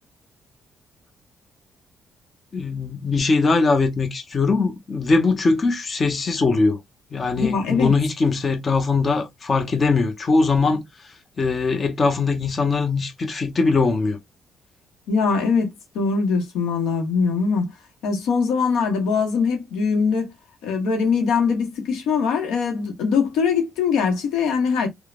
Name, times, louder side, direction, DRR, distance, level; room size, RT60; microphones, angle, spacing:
voice 1, 2.5-6.8 7.1-10.8 11.4-14.2, left 4 dB, 40° left, 0.6 m, -21 dB
voice 2, 7.4-7.9 15.1-17.7 18.0-20.3 20.6-24.9, left 5 dB, 90° left, 0.8 m, -22 dB
3.1 x 2.0 x 2.3 m
cardioid pair, 90°, 0 cm